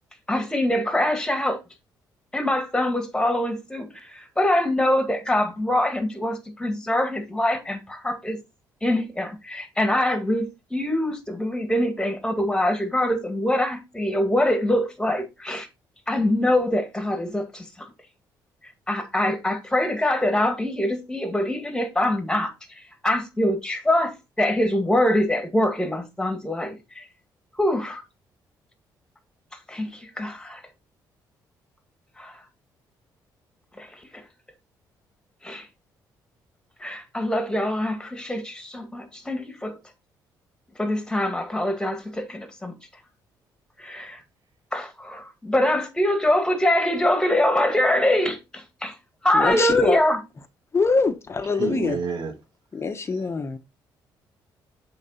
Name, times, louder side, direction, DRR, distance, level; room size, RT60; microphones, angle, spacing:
voice 1, 0.3-1.6 2.3-8.4 8.8-15.7 16.1-17.9 18.6-27.1 27.6-28.0 29.5-30.6 32.2-32.4 33.8-34.2 35.4-35.7 36.8-39.8 40.8-42.7 43.8-44.2 44.7-49.0 49.2-50.2, left 1 dB, 10° left, 1.8 m, -24 dB
voice 2, 49.3-50.0 50.7-52.0 52.7-53.6, left 4 dB, 35° left, 0.8 m, -24 dB
voice 3, 51.5-52.3, right 5 dB, 70° right, 1.3 m, -29 dB
7.5 x 3.9 x 4.0 m
cardioid pair, 85°, 8 cm